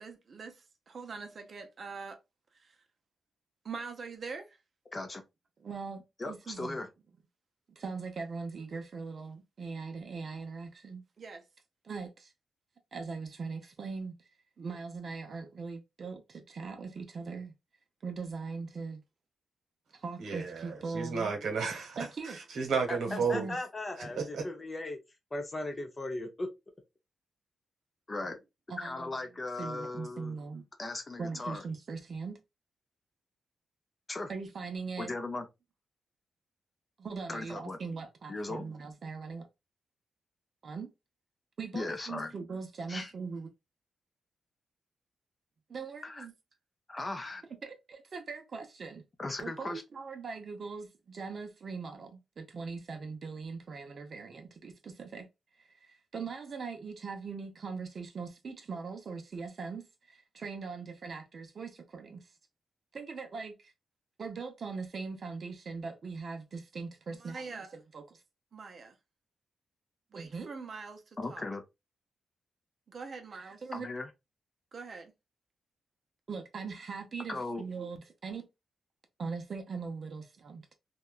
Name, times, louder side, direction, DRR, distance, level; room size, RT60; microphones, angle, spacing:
voice 1, 0.0-2.2 2.6-2.7 3.6-4.5 5.6-6.8 7.7-11.4 11.8-12.3 12.9-14.3 14.6-17.5 18.0-19.0 19.9-21.3 22.0-22.4 23.1-23.6 28.7-29.1 29.6-30.6 31.2-32.4 34.3-35.1 37.0-39.5 40.6-40.9 41.6-43.5 45.7-46.3 47.6-49.0 49.4-55.3 55.6-62.3 62.9-63.7 64.2-68.2 68.5-69.0 70.1-71.0 71.3-71.4 72.9-73.9 74.7-75.1 76.3-78.5 79.2-80.7, right 4 dB, 50° right, 0.5 m, -41 dB
voice 2, 4.9-5.2 6.2-6.9 22.9-25.0 25.3-26.5 28.1-28.4 28.8-30.3 30.8-31.6 34.1-34.3 35.0-35.5 37.3-37.8 38.3-38.6 41.7-42.3 42.9-43.1 46.0-46.3 46.9-47.4 49.2-49.8 71.2-71.6 73.7-74.1 77.3-77.6, left 2 dB, 25° left, 0.5 m, -37 dB
voice 3, 20.2-22.0 22.3-23.5 24.0-24.4, right 5 dB, 80° right, 1.0 m, -33 dB
2.8 x 2.2 x 2.3 m
cardioid pair, 110°, 0 cm